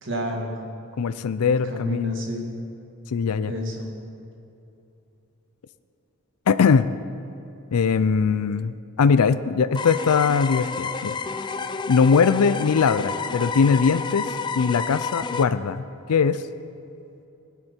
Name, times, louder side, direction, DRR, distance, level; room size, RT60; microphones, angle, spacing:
voice 1, 0.0-0.6 1.5-2.5 3.5-3.9, equal, 55° right, 0 dB, 2.0 m, -30 dB
voice 2, 1.0-2.1 3.1-3.5 6.5-6.9 7.7-11.2 11.9-14.3 14.6-15.8 16.1-16.4, left 5 dB, 85° left, 13 dB, 0.4 m, -21 dB
sound 1, 9.7-15.4, left 4 dB, 20° left, 0.3 m, -30 dB
17.0 x 11.0 x 4.4 m, 2.7 s
head